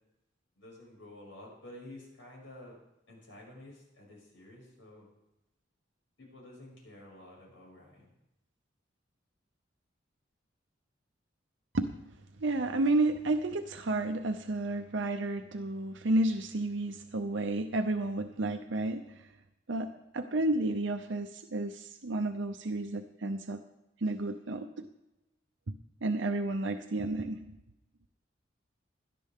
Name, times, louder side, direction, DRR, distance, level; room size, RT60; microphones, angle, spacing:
voice 1, 0.6-2.8 3.1-5.1 6.2-8.1, left 1 dB, 80° left, -2 dB, 6.2 m, -51 dB
voice 2, 12.4-19.3 19.7-23.6 24.0-24.9 25.7-27.4, right 2 dB, 75° right, 6 dB, 0.7 m, -31 dB
17.0 x 12.0 x 3.7 m, 0.92 s
head